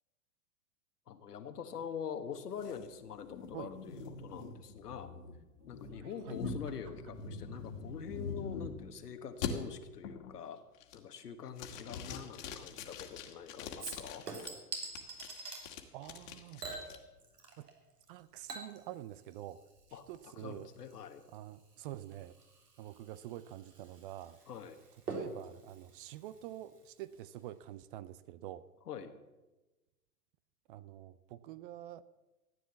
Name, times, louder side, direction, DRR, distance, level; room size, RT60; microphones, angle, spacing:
voice 1, 1.1-5.1 5.7-10.6 10.9-14.3 19.9-21.2 24.5-24.8 28.8-29.1, left 7 dB, 75° left, 7 dB, 1.7 m, -45 dB
sound 1, 2.6-8.9 9.4-9.5 10.0-10.4 10.8-11.2 11.6-14.5 14.9-17.0, left 6 dB, 55° left, 2.1 m, -44 dB
sound 2, 5.6-7.1 7.5-8.7 9.3-9.4, right 5 dB, 55° right, 2.3 m, -62 dB
Chink clink / Liquid, 13.8-15.6 16.6-17.7 18.0-27.0 27.4-27.5, right 3 dB, 80° right, 3.3 m, -47 dB
voice 2, 15.9-16.7 17.6-17.7 18.1-19.6 19.9-20.7 21.3-22.4 22.8-24.4 25.1-28.7 30.7-32.0, right 13 dB, 35° right, 16 dB, 0.5 m, -47 dB
14.0 x 9.5 x 7.2 m, 1.1 s
hypercardioid pair, 105°, 47 cm